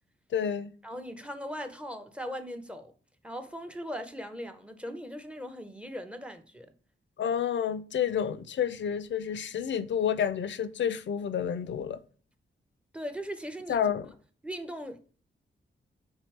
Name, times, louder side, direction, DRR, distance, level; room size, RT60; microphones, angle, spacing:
voice 1, 0.3-0.7 7.2-12.0 13.7-14.1, left 8 dB, 65° left, 0.4 m, -29 dB
voice 2, 0.8-2.9 3.2-6.7 12.9-13.8 14.4-15.0, equal, 5° right, 0.6 m, -39 dB
4.4 x 3.5 x 3.2 m
cardioid pair, 85°, 21 cm